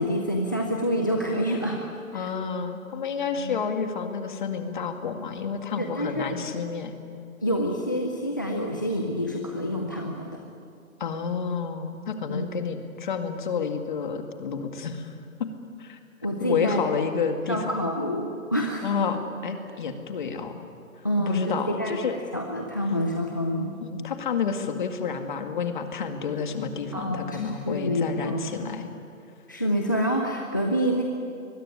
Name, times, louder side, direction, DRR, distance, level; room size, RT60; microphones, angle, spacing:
voice 1, 0.0-1.8 2.1-2.3 3.4-3.6 5.8-6.3 7.4-10.4 12.3-12.5 16.2-16.8 17.5-18.9 21.0-23.7 26.9-28.4 29.5-31.0, equal, 15° left, 2 dB, 0.6 m, -27 dB
voice 2, 2.1-6.9 11.0-15.1 15.4-15.5 15.8-16.0 16.4-17.8 18.8-20.6 21.2-22.1 23.8-28.9, left 6 dB, 35° left, 6 dB, 2.1 m, -30 dB
23.5 x 21.5 x 9.9 m, 2.6 s
hypercardioid pair, 170°, 42 cm